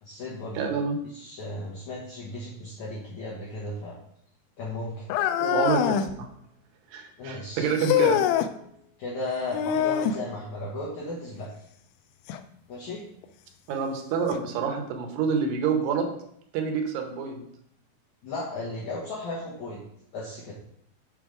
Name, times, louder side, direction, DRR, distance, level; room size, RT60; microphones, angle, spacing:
voice 1, 0.0-0.7 1.1-4.0 4.6-5.1 7.2-7.9 9.0-11.5 12.7-13.0 18.2-19.8 20.1-20.5, left 2 dB, 60° left, -4 dB, 2.2 m, -35 dB
voice 2, 0.5-1.0 5.4-6.3 6.9-8.3 13.7-16.1 16.5-17.4, right 6 dB, 85° right, 3 dB, 3.1 m, -27 dB
sound 1, 5.1-6.1 7.8-8.5 9.5-10.2 12.3-12.4 13.2-13.3 14.3-14.4, left 10 dB, 90° left, 2.7 m, -24 dB
7.6 x 4.8 x 5.0 m, 0.70 s
omnidirectional pair, 4.7 m